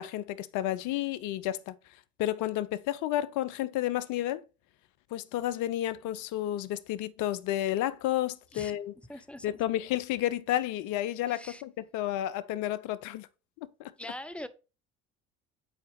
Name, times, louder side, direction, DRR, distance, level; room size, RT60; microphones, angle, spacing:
voice 1, 0.0-1.8 2.2-4.4 5.1-8.9 9.4-13.3 13.6-13.9, left 13 dB, 65° left, 0.6 m, -31 dB
voice 2, 9.1-9.5 11.3-11.6 14.0-14.5, left 1 dB, 5° left, 0.9 m, -42 dB
9.7 x 4.5 x 3.5 m
hypercardioid pair, 70°, 33 cm